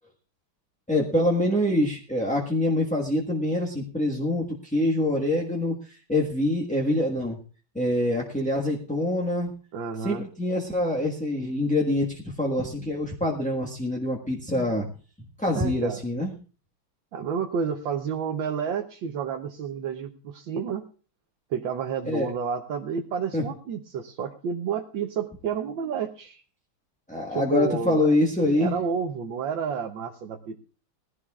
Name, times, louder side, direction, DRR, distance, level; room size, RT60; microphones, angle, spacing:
voice 1, 0.9-7.4 7.7-9.5 10.0-14.9 15.4-16.3 22.0-22.3 23.3-23.4 27.1-28.7, left 1 dB, 5° left, -3 dB, 1.1 m, -25 dB
voice 2, 9.7-10.2 15.6-16.0 17.1-20.8 21.5-26.4 27.3-28.1 28.6-30.6, right 7 dB, 70° right, 4 dB, 1.6 m, -30 dB
20.5 x 16.0 x 2.4 m, 0.37 s
omnidirectional pair, 2.3 m